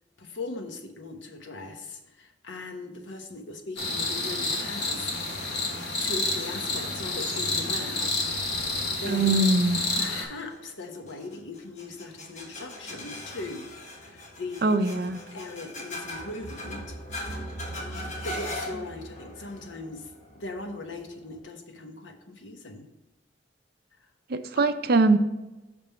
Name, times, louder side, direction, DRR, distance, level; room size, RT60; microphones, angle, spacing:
voice 1, 0.2-5.6 6.0-8.2 8.6-9.5 9.9-13.7 14.0-14.7 15.3-16.9 17.7-22.9 24.5-24.6, left 2 dB, 75° left, 4 dB, 1.0 m, -39 dB
sound 1, 3.8-10.2, left 2 dB, 60° left, 1.3 m, -29 dB
voice 2, 9.1-9.8 14.6-15.2 24.3-25.2, right 2 dB, 55° right, 8 dB, 0.5 m, -22 dB
sound 2, 10.1-21.4, left 1 dB, 40° left, 1.2 m, -40 dB
6.0 x 5.3 x 4.4 m, 1.1 s
head